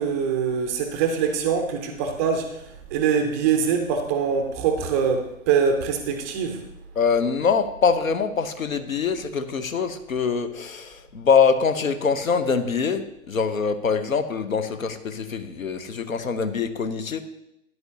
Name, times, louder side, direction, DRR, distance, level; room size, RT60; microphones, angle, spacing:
voice 1, 0.0-2.6 2.9-6.6, right 6 dB, 10° right, 6 dB, 0.4 m, -23 dB
voice 2, 7.0-17.2, left 5 dB, 75° left, 10 dB, 1.0 m, -24 dB
12.5 x 9.8 x 2.8 m, 0.83 s
figure-of-eight pair, 115°, 41 cm